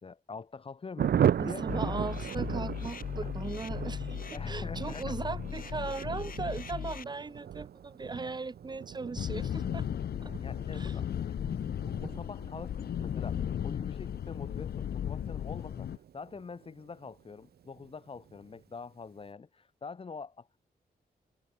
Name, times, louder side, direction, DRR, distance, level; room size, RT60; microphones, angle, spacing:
voice 1, 0.0-2.0 4.3-5.2 10.4-11.6 11.9-20.6, left 5 dB, 35° left, 2.1 m, -45 dB
Thunder, 1.0-17.1 17.4-17.5 17.8-17.9 18.2-18.6, right 9 dB, 85° right, 1.4 m, -37 dB
voice 2, 1.4-9.9 10.2-10.3 10.7-11.0, right 3 dB, 25° right, 2.4 m, -38 dB
sound 1, 1.7-7.0, left 7 dB, 60° left, 2.8 m, -38 dB
sound 2, 9.1-16.0, left 9 dB, 80° left, 1.1 m, -35 dB
wide cardioid pair, 165°, 16 cm